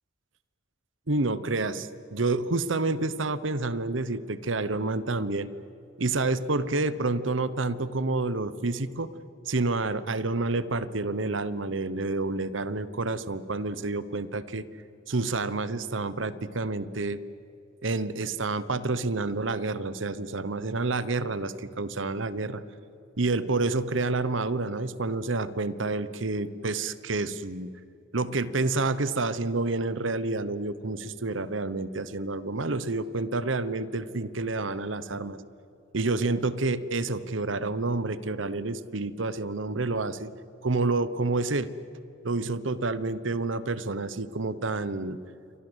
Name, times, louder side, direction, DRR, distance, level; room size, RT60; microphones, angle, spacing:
voice 1, 1.1-5.5 6.0-9.1 9.5-14.6 15.1-17.2 17.8-22.6 23.2-27.7 28.1-35.4 35.9-40.3 40.6-41.7 42.2-45.2, right 3 dB, 85° right, 16 dB, 1.1 m, -29 dB
28.5 x 24.0 x 8.1 m, 2.8 s
head